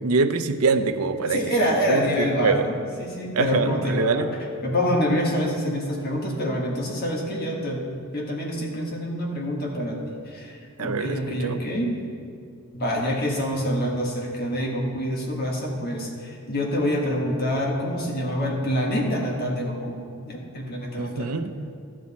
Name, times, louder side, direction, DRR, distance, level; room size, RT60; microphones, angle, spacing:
voice 1, 0.0-1.4 1.9-2.7 3.3-4.3 10.8-11.6 21.0-21.7, right 4 dB, 85° right, 9 dB, 0.6 m, -24 dB
voice 2, 1.2-4.3 4.6-11.9 12.7-21.3, equal, 45° left, -1 dB, 1.6 m, -26 dB
12.5 x 7.6 x 4.2 m, 2.3 s
head